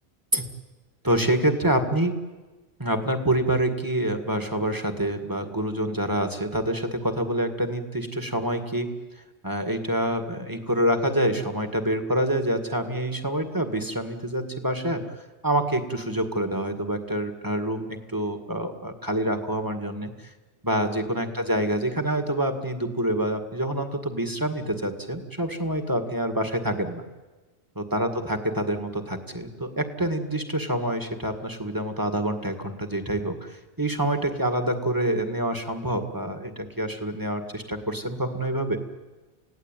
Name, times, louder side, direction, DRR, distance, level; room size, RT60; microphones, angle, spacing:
voice 1, 1.0-2.2 2.8-8.9 9.4-15.0 15.4-20.1 20.6-27.0 27.8-38.8, right 1 dB, 20° right, 6 dB, 2.0 m, -26 dB
29.0 x 17.0 x 9.1 m, 1.2 s
omnidirectional pair, 1.1 m